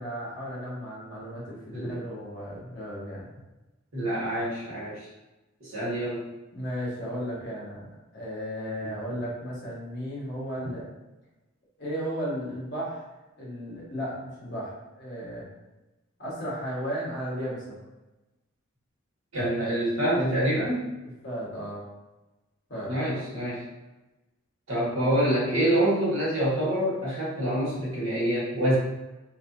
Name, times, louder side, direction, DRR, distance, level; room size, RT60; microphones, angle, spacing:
voice 1, 0.0-3.3 6.5-7.9 8.1-10.9 11.8-13.1 13.4-15.5 16.2-17.8 21.2-21.8 22.7-23.2, equal, 55° left, -6 dB, 1.4 m, -34 dB
voice 2, 1.7-2.0 3.9-5.1 5.6-6.3 19.3-20.9 22.9-23.6 24.7-28.8, right 1 dB, 80° right, -7 dB, 1.5 m, -26 dB
3.2 x 2.6 x 2.7 m, 1.1 s
head